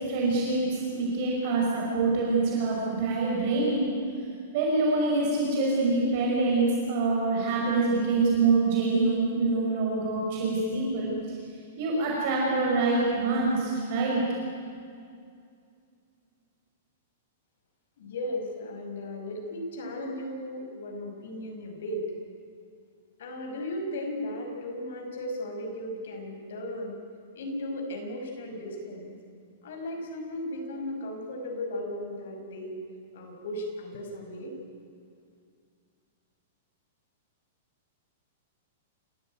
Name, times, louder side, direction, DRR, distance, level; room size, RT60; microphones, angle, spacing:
voice 1, 0.1-3.9 4.5-11.1 11.8-14.2, right 3 dB, 35° right, -3 dB, 5.8 m, -25 dB
voice 2, 18.0-22.1 23.2-27.0 27.4-29.1 29.6-32.8 33.1-34.5, left 1 dB, 65° left, 3 dB, 5.9 m, -36 dB
28.0 x 15.5 x 9.4 m, 2.3 s
supercardioid pair, 180°, 0 cm